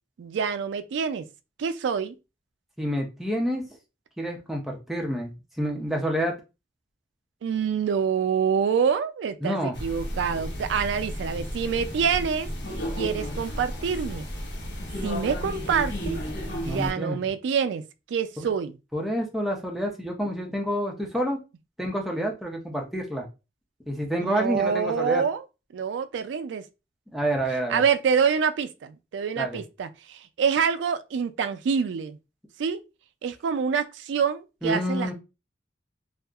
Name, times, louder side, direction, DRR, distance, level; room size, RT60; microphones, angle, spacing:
voice 1, 0.2-1.3 1.6-2.2 7.4-12.5 13.0-14.2 15.0-17.8 18.1-18.7 24.2-25.4 25.7-26.6 27.7-32.2 32.6-32.8 33.2-35.1, right 6 dB, 75° right, 0.3 m, -26 dB
voice 2, 2.8-3.6 4.2-6.4 9.4-9.8 16.7-17.2 18.4-18.5 18.9-21.4 21.8-23.3 23.9-25.2 27.1-27.8 29.4-29.6 34.6-35.1, equal, ahead, 0.5 m, -28 dB
sound 1, 9.7-16.9, equal, 70° left, 0.8 m, -33 dB
2.7 x 2.4 x 2.3 m
head